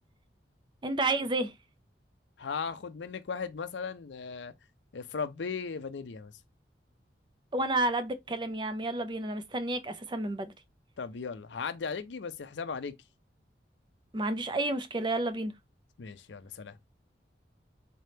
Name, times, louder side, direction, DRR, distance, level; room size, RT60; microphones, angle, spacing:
voice 1, 0.8-1.5 7.5-10.5 14.1-15.5, right 2 dB, 25° right, 0.4 m, -30 dB
voice 2, 2.4-4.5 4.9-6.3 11.0-12.9 16.0-16.8, left 5 dB, 75° left, 0.5 m, -37 dB
4.1 x 3.4 x 2.7 m
head